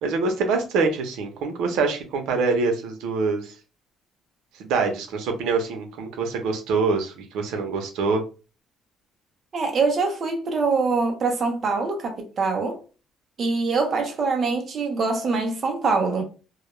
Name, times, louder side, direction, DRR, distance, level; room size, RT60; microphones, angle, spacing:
voice 1, 0.0-3.5 4.6-8.2, right 4 dB, 80° right, 0.6 m, -25 dB
voice 2, 9.5-12.8 13.4-16.2, right 4 dB, 30° right, 0.6 m, -24 dB
2.3 x 2.1 x 2.9 m
cardioid pair, 165°, 0 cm